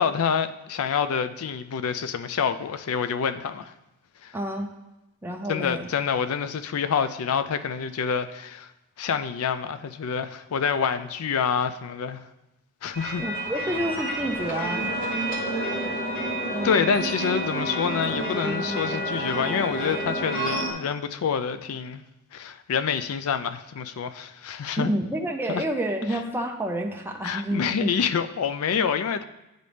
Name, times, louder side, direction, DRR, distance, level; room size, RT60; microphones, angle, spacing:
voice 1, 0.0-3.7 4.2-4.4 5.5-8.7 9.0-12.2 12.8-13.2 16.6-22.0 22.3-24.9 25.5-25.6 26.1-26.2 27.2-29.2, left 6 dB, 75° left, 0.4 m, -27 dB
voice 2, 4.3-4.7 5.2-5.9 13.2-14.9 16.5-16.9 24.8-27.9, right 1 dB, 10° right, 0.4 m, -29 dB
sound 1, 12.9-20.7, right 1 dB, 40° left, 1.1 m, -29 dB
9.9 x 4.0 x 3.3 m
head